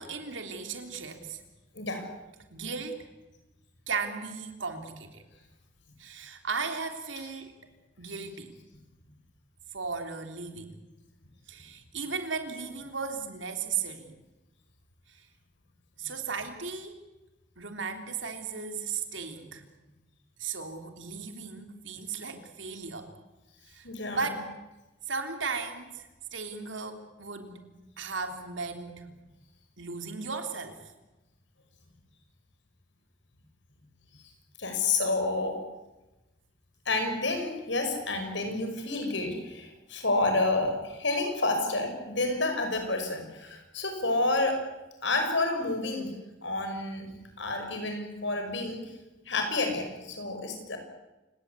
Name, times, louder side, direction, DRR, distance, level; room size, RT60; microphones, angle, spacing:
voice 1, 0.0-1.4 2.5-3.1 3.9-5.2 6.0-7.6 8.0-8.5 9.7-10.7 11.5-14.1 15.1-15.2 16.0-17.0 17.6-19.6 20.4-23.1 23.7-24.5 25.1-27.6 28.0-29.0 29.8-30.8, right 5 dB, 80° right, 6 dB, 3.4 m, -36 dB
voice 2, 23.8-24.4 34.6-35.6 36.9-44.6 45.0-46.1 46.4-47.1 47.4-48.8 49.3-50.8, left 2 dB, 70° left, 5 dB, 5.9 m, -29 dB
28.5 x 18.5 x 8.4 m, 1.1 s
head